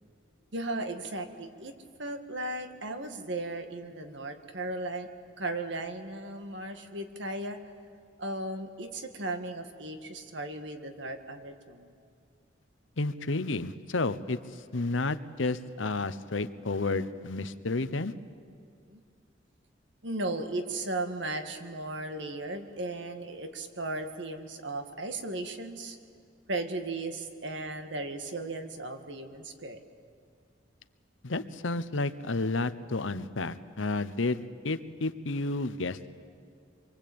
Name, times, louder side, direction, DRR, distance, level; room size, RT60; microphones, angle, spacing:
voice 1, 0.5-1.7 2.0-5.1 5.4-7.6 8.2-11.9 18.9-19.0 20.0-26.0 26.5-29.8, right 2 dB, 70° right, 6 dB, 1.9 m, -36 dB
voice 2, 13.0-14.4 14.7-18.1 31.2-36.1, left 3 dB, 85° left, 12 dB, 1.0 m, -31 dB
26.0 x 23.0 x 8.7 m, 2.3 s
head